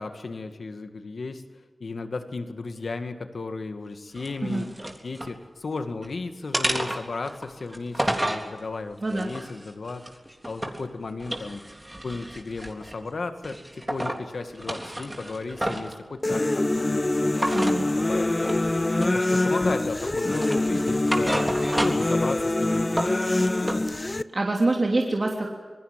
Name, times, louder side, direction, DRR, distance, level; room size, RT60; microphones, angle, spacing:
voice 1, 0.0-1.4 1.8-4.7 5.0-10.1 10.5-11.6 12.0-13.6 13.9-18.5 19.1-21.5 21.8-23.4, left 3 dB, 80° left, 8 dB, 2.0 m, -34 dB
sound 1, 4.2-5.3 5.8-6.1 6.5-8.5 9.1-10.9 11.2-13.0 13.4-14.2 14.5-16.0 17.3-17.8 18.4-18.7 19.0-19.7 20.2-22.2 22.5-23.8, right 1 dB, 20° right, 3.6 m, -31 dB
sound 2, 16.2-24.2, left 2 dB, 35° left, 0.9 m, -24 dB
voice 2, 17.5-17.8 24.3-25.5, right 2 dB, 55° right, 0 dB, 3.1 m, -25 dB
27.0 x 19.5 x 7.7 m, 1.4 s
cardioid pair, 40°, 0 cm